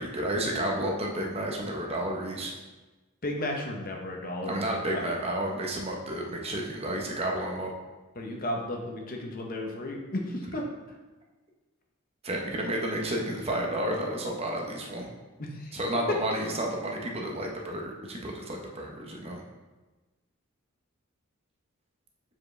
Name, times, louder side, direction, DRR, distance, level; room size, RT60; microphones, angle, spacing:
voice 1, 0.0-2.5 4.5-7.7 12.2-15.1 15.7-19.4, right 1 dB, 30° right, 0 dB, 0.8 m, -31 dB
voice 2, 3.2-5.1 8.1-10.7 15.4-15.8, left 1 dB, 45° left, 1 dB, 0.8 m, -34 dB
7.2 x 4.8 x 3.2 m, 1.2 s
head